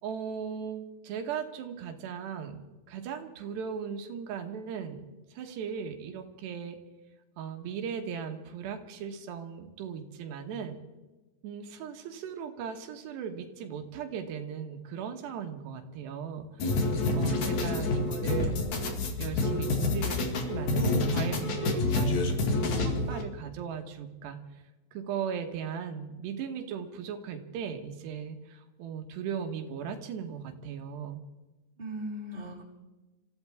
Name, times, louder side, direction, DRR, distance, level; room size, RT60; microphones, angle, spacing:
voice 1, 0.0-5.1 5.3-6.8 7.4-10.8 11.4-16.8 17.2-18.5 19.2-22.2 22.4-24.6 24.9-31.2, right 7 dB, 85° right, 5 dB, 3.5 m, -37 dB
sound 1, 16.6-23.2, left 2 dB, 50° left, 3.0 m, -28 dB
voice 2, 17.1-17.9 21.4-21.8 31.8-32.6, right 2 dB, 15° right, -4 dB, 3.9 m, -39 dB
27.5 x 15.0 x 3.5 m, 1.1 s
omnidirectional pair, 4.8 m